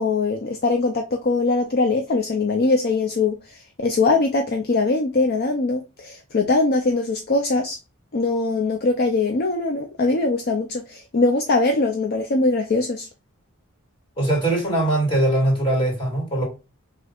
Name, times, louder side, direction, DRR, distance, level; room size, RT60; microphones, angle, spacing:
voice 1, 0.0-3.4 3.8-7.8 8.1-13.1, left 3 dB, 50° left, 0.6 m, -21 dB
voice 2, 14.2-16.4, right 1 dB, 25° left, 2.6 m, -21 dB
5.0 x 3.7 x 2.4 m
head